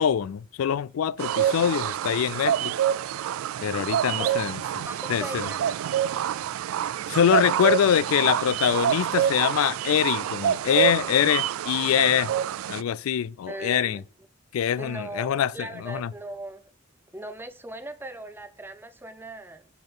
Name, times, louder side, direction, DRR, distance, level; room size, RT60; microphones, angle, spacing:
voice 1, 0.0-2.7 3.6-5.5 7.1-12.3 12.7-14.0 14.5-16.1, left 9 dB, 80° left, 0.3 m, -24 dB
sound 1, 1.2-12.8, right 10 dB, 80° right, 0.3 m, -27 dB
voice 2, 4.8-5.7 13.5-14.0 14.8-16.6 17.1-19.7, right 1 dB, 10° right, 0.6 m, -38 dB
10.5 x 3.7 x 6.1 m
head